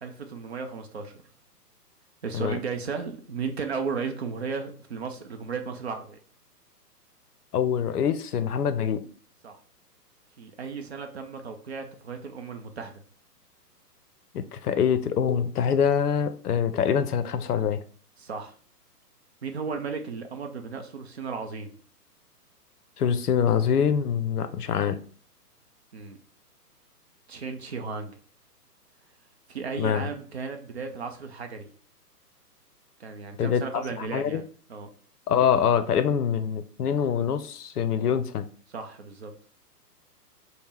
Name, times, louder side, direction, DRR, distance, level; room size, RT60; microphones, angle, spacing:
voice 1, 0.0-1.2 2.2-6.2 9.4-9.6 10.4-13.0 18.2-18.6 19.4-21.7 25.9-26.2 27.3-28.1 29.5-31.7 33.0-34.9 38.7-39.3, right 5 dB, 45° right, 0.5 m, -35 dB
voice 2, 7.5-9.0 14.3-17.8 23.0-25.0 29.8-30.1 33.4-33.6 34.1-34.4 35.3-38.5, left 7 dB, 70° left, 0.5 m, -24 dB
3.5 x 2.1 x 4.2 m
figure-of-eight pair, 130°, 48 cm